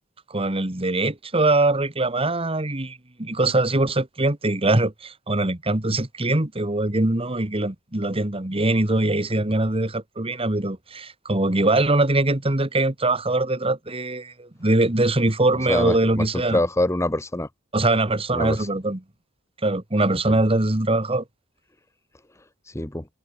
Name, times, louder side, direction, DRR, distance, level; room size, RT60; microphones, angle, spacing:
voice 1, 0.3-16.6 17.7-19.0 19.6-21.2, right 2 dB, 30° right, 1.8 m, -22 dB
voice 2, 15.7-17.5 18.3-18.7 20.3-20.4 22.7-23.1, left 1 dB, 15° left, 1.1 m, -25 dB
head